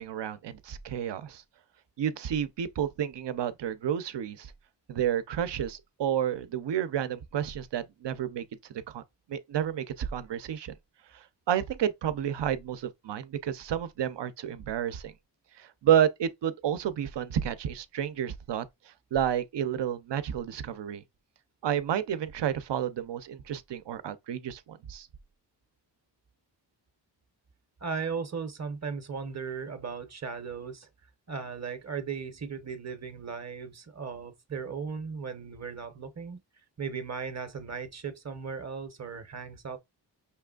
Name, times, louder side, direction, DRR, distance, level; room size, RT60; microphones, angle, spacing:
voice 1, 0.0-1.4 2.0-4.5 4.9-8.4 8.7-9.0 9.3-10.7 11.1-15.1 15.6-21.0 21.6-25.1, right 9 dB, 75° right, 0.7 m, -30 dB
voice 2, 27.8-30.9 31.3-36.4 36.8-39.8, right 5 dB, 40° right, 0.8 m, -37 dB
5.9 x 3.3 x 2.3 m
wide cardioid pair, 160°, 43 cm